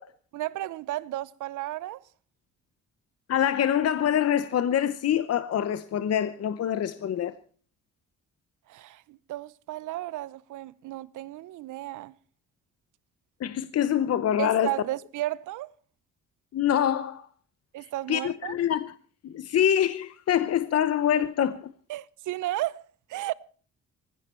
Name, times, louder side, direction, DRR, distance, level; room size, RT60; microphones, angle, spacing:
voice 1, 0.3-2.0 8.7-12.1 14.4-15.7 17.7-18.6 21.9-22.8 23.1-23.3, right 15 dB, 80° right, 0.8 m, -33 dB
voice 2, 3.3-7.3 13.4-14.7 16.5-17.3 18.1-18.9 19.2-21.7, left 10 dB, 55° left, 0.9 m, -25 dB
19.0 x 15.5 x 4.4 m
cardioid pair, 90°, 30 cm